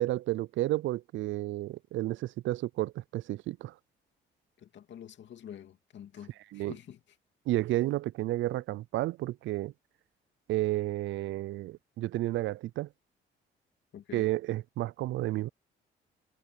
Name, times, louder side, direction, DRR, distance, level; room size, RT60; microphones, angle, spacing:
voice 1, 0.0-3.7 6.5-6.7 7.5-9.7 10.5-12.9 14.1-15.5, right 16 dB, 75° right, 0.4 m, -31 dB
voice 2, 4.6-7.0 13.9-14.2, left 9 dB, 65° left, 2.7 m, -47 dB
cardioid pair, 90°, 20 cm